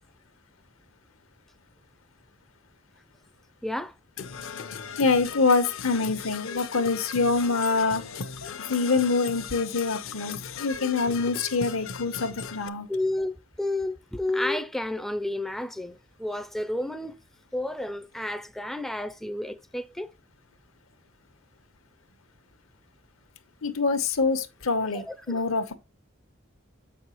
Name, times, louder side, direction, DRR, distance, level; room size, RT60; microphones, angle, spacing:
voice 1, 3.6-3.9 12.9-17.2 17.5-20.1 24.8-25.4, left 1 dB, ahead, 0.3 m, -31 dB
Percussion / Brass instrument, 4.2-12.7, left 6 dB, 65° left, 0.6 m, -38 dB
voice 2, 5.0-8.0 8.7-12.9 23.6-25.8, left 4 dB, 85° left, 1.0 m, -25 dB
7.6 x 6.0 x 3.0 m
head